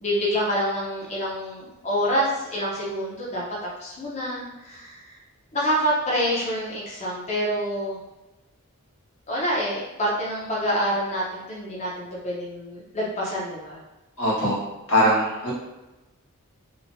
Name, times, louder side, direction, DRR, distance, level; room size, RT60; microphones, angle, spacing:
voice 1, 0.0-3.4 3.8-5.2 5.5-8.0 9.3-13.8, equal, 30° left, -5 dB, 0.6 m, -27 dB
voice 2, 14.2-14.6 14.9-15.5, equal, 75° left, -8 dB, 1.3 m, -21 dB
3.0 x 2.1 x 2.6 m, 1.1 s
head